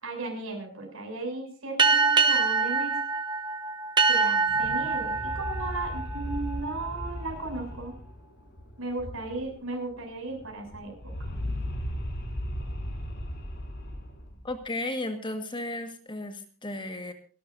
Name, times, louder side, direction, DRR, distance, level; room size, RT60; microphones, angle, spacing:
voice 1, 0.0-3.0 4.0-7.9 8.8-11.4, right 2 dB, 65° right, 2 dB, 7.1 m, -36 dB
sound 1, 1.8-6.9, right 4 dB, 20° right, 1.0 m, -25 dB
sound 2, 4.4-9.7 9.9-10.0 10.3-14.6, equal, 50° left, 5.0 m, -37 dB
voice 2, 14.4-17.1, left 1 dB, 20° left, 6 dB, 1.7 m, -34 dB
28.5 x 12.5 x 2.7 m, 0.39 s
head